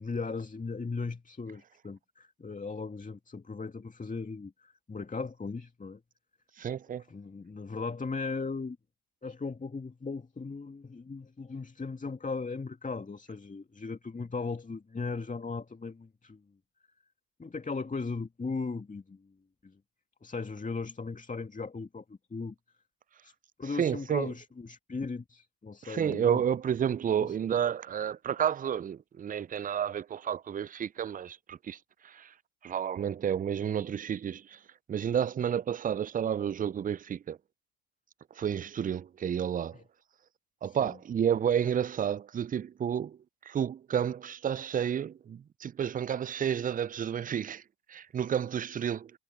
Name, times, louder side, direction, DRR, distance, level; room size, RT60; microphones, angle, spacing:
voice 1, 0.0-6.0 7.1-8.8 9.2-16.4 17.4-19.3 19.6-19.8 20.2-22.5 23.2-23.3 23.6-26.4 27.2-27.4 39.7-39.8 40.6-41.0, left 4 dB, 15° left, 2.3 m, -37 dB
voice 2, 6.6-7.0 23.7-24.3 25.8-31.8 32.0-32.3 32.6-34.6 34.9-37.4 38.4-39.8 40.6-43.2 43.5-47.6 47.9-49.1, right 8 dB, 20° right, 0.6 m, -31 dB
figure-of-eight pair, 65°, 49 cm